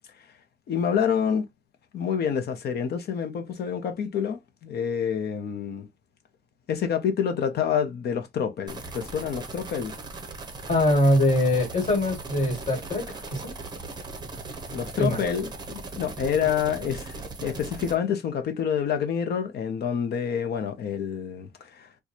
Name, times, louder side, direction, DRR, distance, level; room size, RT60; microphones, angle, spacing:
voice 1, 0.7-1.5 1.9-5.9 6.7-9.9 14.7-21.9, left 7 dB, 55° left, 0.8 m, -28 dB
sound 1, 8.7-18.0, right 3 dB, 20° right, 0.8 m, -39 dB
voice 2, 10.7-13.5 15.0-15.2, left 1 dB, 35° left, 1.9 m, -23 dB
4.5 x 2.3 x 2.6 m
cardioid pair, 160°, 21 cm